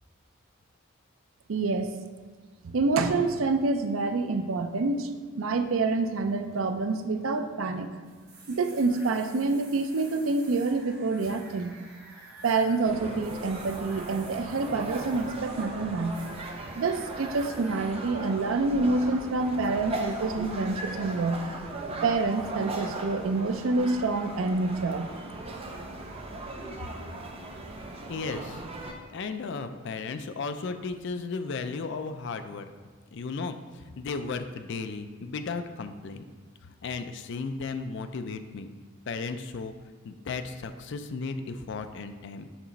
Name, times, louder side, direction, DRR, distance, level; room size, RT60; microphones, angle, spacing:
voice 1, 1.5-1.9 2.6-5.1 5.4-7.9 8.5-11.7 12.4-16.2 16.8-21.4 22.0-25.1, right 3 dB, 70° right, 8 dB, 0.5 m, -27 dB
sound 1, 8.0-17.9, right 2 dB, 45° right, 1.2 m, -50 dB
sound 2, 12.8-28.9, right 2 dB, 30° right, 0.6 m, -38 dB
voice 2, 28.1-28.6 29.1-32.7 33.1-36.2 36.8-38.7 39.1-39.7 40.0-42.5, left 4 dB, 55° left, 9 dB, 0.4 m, -35 dB
7.1 x 3.0 x 5.2 m, 1.5 s
head